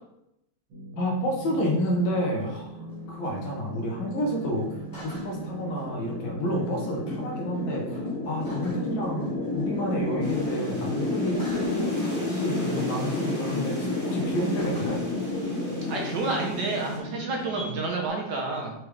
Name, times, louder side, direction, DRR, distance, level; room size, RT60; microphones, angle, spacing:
sound 1, 0.7-18.1, right 1 dB, 80° right, 1.9 m, -40 dB
voice 1, 1.0-2.8 3.1-15.0, equal, 70° left, 0 dB, 1.7 m, -30 dB
sound 2, 1.3-17.7, left 2 dB, 15° left, 0.8 m, -32 dB
sound 3, 10.2-17.0, left 1 dB, 30° left, 1.0 m, -43 dB
voice 2, 15.9-18.7, right 3 dB, 65° right, 0 dB, 1.3 m, -29 dB
4.8 x 3.3 x 3.1 m, 0.81 s
omnidirectional pair, 2.3 m